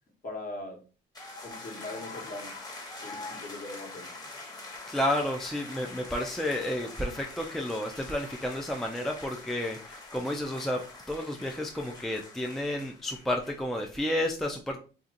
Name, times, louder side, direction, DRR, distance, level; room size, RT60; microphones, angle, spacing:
voice 1, 0.2-0.8 1.4-2.6 3.0-4.1, left 2 dB, 45° left, 1.2 m, -41 dB
sound 1, 1.1-13.8, left 2 dB, 20° left, 1.1 m, -44 dB
voice 2, 4.9-10.8 11.1-14.8, left 1 dB, ahead, 0.5 m, -31 dB
2.8 x 2.4 x 3.7 m
cardioid pair, 90°, 20 cm